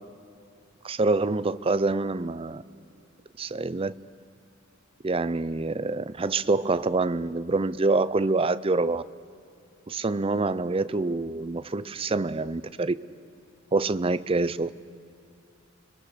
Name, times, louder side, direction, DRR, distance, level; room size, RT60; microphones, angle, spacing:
voice 1, 0.8-2.6 3.4-3.9 5.0-9.0 9.9-13.0 13.7-14.7, right 3 dB, 25° right, 15 dB, 0.5 m, -26 dB
29.5 x 22.5 x 6.7 m, 2.5 s
head